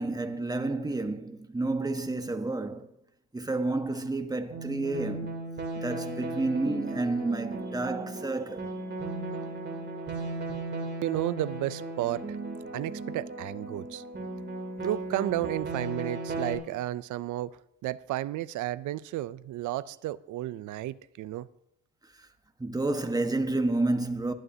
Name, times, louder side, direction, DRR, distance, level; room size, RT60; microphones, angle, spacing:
voice 1, 0.0-2.9 3.3-5.3 5.8-8.7 22.2-22.3 22.6-24.3, right 2 dB, 10° right, 1.3 m, -30 dB
sound 1, 4.5-16.5, right 2 dB, 35° right, 3.2 m, -36 dB
voice 2, 11.0-12.2 12.7-14.0 14.8-21.5, right 14 dB, 80° right, 0.6 m, -32 dB
19.0 x 11.5 x 2.8 m
cardioid pair, 90°, 30 cm